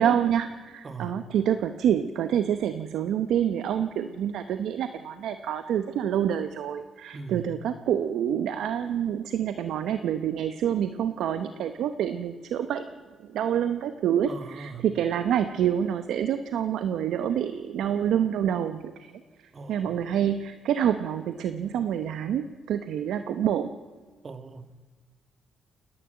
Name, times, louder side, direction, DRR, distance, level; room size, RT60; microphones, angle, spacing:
voice 1, 0.0-12.8 13.3-19.1 19.7-23.7, right 9 dB, 80° right, 10 dB, 0.9 m, -27 dB
voice 2, 0.8-1.2 7.1-7.5 14.3-14.9 19.5-20.0 24.2-24.8, right 4 dB, 40° right, 10 dB, 1.5 m, -40 dB
28.5 x 11.0 x 8.9 m, 1.5 s
cardioid pair, 90°, 0 cm